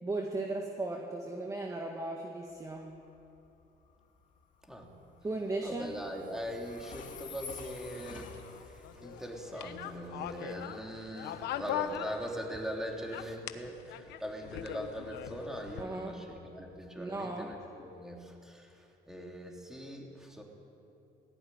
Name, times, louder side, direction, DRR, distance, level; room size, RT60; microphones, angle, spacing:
voice 1, 0.0-2.9 5.2-6.0 15.8-16.2 17.0-17.5, right 2 dB, 20° right, 1 dB, 1.8 m, -36 dB
Train, 2.5-17.2, left 6 dB, 50° left, 2.1 m, -53 dB
voice 2, 4.6-5.0 5.6-20.4, equal, 5° right, 0 dB, 3.3 m, -41 dB
sound 1, 7.7-12.7 13.0-15.8, left 11 dB, 80° left, 1.1 m, -41 dB
18.0 x 16.5 x 9.9 m, 2.8 s
cardioid pair, 110°, 17 cm